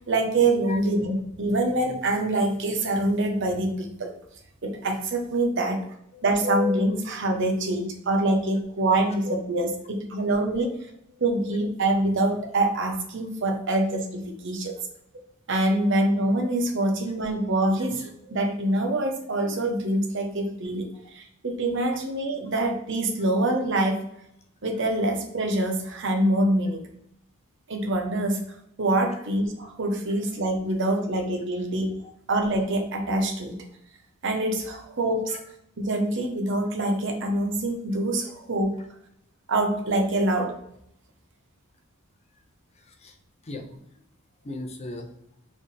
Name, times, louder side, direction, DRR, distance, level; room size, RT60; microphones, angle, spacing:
voice 1, 0.1-4.1 4.6-5.8 6.2-10.7 11.2-14.8 15.5-24.0 24.6-26.8 27.7-28.4 28.8-32.0 32.3-33.6 34.2-35.4 35.8-38.8 39.5-40.6, right 1 dB, 55° right, 3 dB, 0.9 m, -25 dB
voice 2, 6.1-6.5 8.9-9.1 11.1-11.2 14.8-14.9 20.9-21.0 29.1-29.2 32.0-32.1 35.3-35.4 42.7-43.2 43.4-44.0 44.4-45.2, left 2 dB, 30° left, 4 dB, 0.6 m, -40 dB
4.5 x 3.5 x 3.2 m, 0.73 s
head